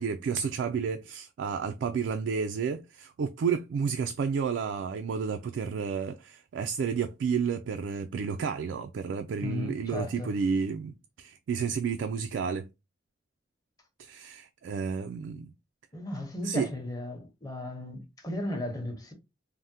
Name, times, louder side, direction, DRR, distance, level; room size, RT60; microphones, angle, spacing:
voice 1, 0.0-12.7 14.0-15.5 16.4-16.7, right 6 dB, 80° right, 0.3 m, -31 dB
voice 2, 9.4-10.4 15.9-19.1, left 1 dB, 20° left, 0.8 m, -35 dB
3.4 x 2.1 x 2.7 m
head